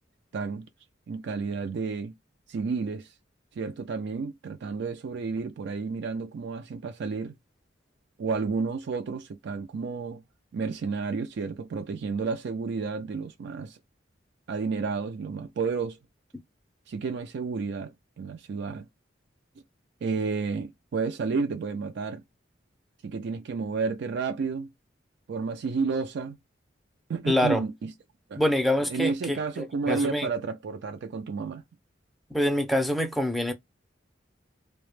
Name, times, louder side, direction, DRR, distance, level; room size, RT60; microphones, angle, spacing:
voice 1, 0.3-0.7 1.1-2.1 2.5-3.1 3.6-7.3 8.2-10.2 10.5-13.8 14.5-16.0 16.9-18.9 20.0-22.2 23.0-24.7 25.3-26.4 27.1-27.9 28.3-28.4 28.9-31.6, right 4 dB, 65° right, 0.4 m, -31 dB
voice 2, 27.3-27.6 28.4-30.3 32.3-33.5, left 1 dB, ahead, 0.4 m, -25 dB
2.1 x 2.0 x 3.0 m
head